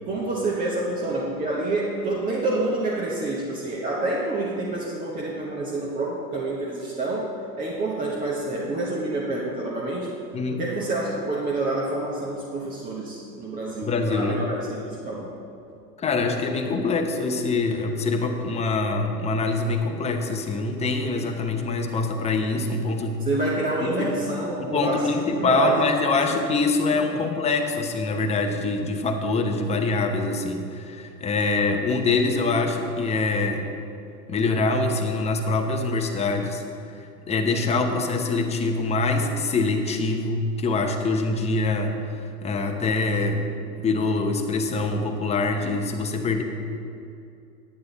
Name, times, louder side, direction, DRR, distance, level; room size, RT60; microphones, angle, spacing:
voice 1, 0.1-10.2 10.6-15.3 23.2-26.4 26.9-27.2, right 2 dB, 15° right, -4 dB, 1.1 m, -28 dB
voice 2, 10.3-10.6 13.8-14.4 16.0-23.2 24.0-24.1 24.6-33.6 34.3-36.6 37.0-42.0 42.4-43.4 43.8-46.4, left 3 dB, 15° left, 3 dB, 0.8 m, -24 dB
10.0 x 9.4 x 4.0 m, 2.6 s
hypercardioid pair, 105°, 49 cm